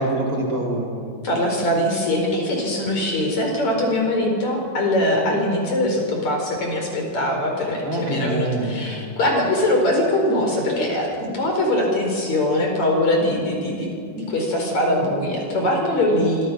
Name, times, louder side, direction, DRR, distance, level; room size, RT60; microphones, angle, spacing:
voice 1, 0.0-1.1 7.8-9.0, right 1 dB, 30° right, -2 dB, 4.6 m, -25 dB
voice 2, 1.2-13.9 14.2-16.4, left 1 dB, 35° left, 1 dB, 5.4 m, -22 dB
26.0 x 22.5 x 6.1 m, 2.4 s
omnidirectional pair, 5.6 m